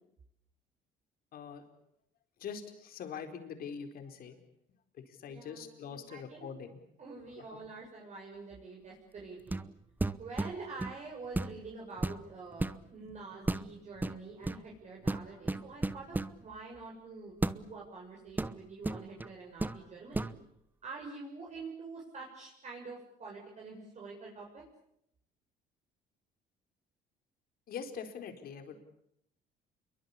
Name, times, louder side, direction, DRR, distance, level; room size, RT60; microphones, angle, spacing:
voice 1, 1.3-1.6 2.4-4.4 4.9-6.8 7.4-7.6 13.0-13.2 27.7-28.8, left 6 dB, 60° left, 6 dB, 4.5 m, -43 dB
voice 2, 5.3-6.5 7.0-9.6 10.2-20.4 20.8-24.6, right 4 dB, 45° right, -2 dB, 7.1 m, -46 dB
sound 1, 9.5-9.7 10.0-11.0 11.4-11.6 12.0-12.8 13.5-13.7 14.0-14.6 15.1-16.4 17.4-17.6 18.4-19.3 19.6-19.8 20.1-20.4, right 2 dB, 10° right, 1.0 m, -34 dB
28.5 x 23.0 x 8.5 m, 0.77 s
cardioid pair, 110°, 17 cm